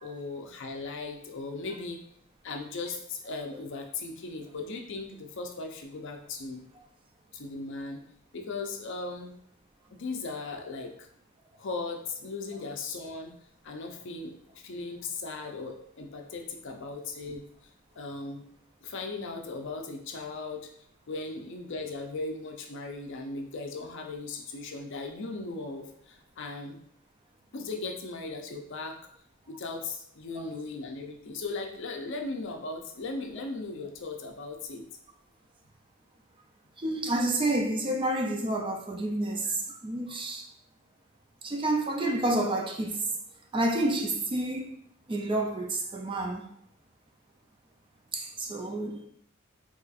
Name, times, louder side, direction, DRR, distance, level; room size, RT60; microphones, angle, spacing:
voice 1, 0.0-2.0 2.4-6.6 7.3-8.0 8.3-9.3 10.0-11.1 11.6-13.3 13.6-14.3 14.6-17.4 18.0-18.4 18.8-20.7 21.1-26.8 27.5-29.0 29.5-34.8, left 3 dB, 60° left, 0.5 m, -37 dB
voice 2, 36.8-40.5 41.4-43.1 43.5-44.8 45.1-46.5 48.1-49.0, right 1 dB, 25° right, 0.4 m, -29 dB
4.1 x 3.0 x 2.4 m
head